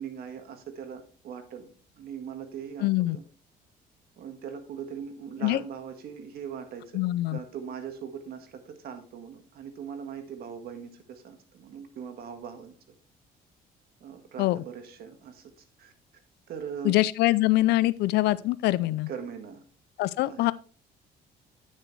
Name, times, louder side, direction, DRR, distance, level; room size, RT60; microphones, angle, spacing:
voice 1, 0.0-2.9 3.1-3.2 4.2-7.0 7.3-12.7 14.0-15.5 15.8-15.9 16.5-17.0 18.8-19.6 20.2-20.4, right 7 dB, 65° right, 1.7 m, -40 dB
voice 2, 2.8-3.2 5.4-5.6 6.9-7.4 14.4-14.6 16.8-19.1 20.0-20.5, left 17 dB, 80° left, 0.5 m, -24 dB
10.0 x 6.4 x 3.2 m
cardioid pair, 110°, 17 cm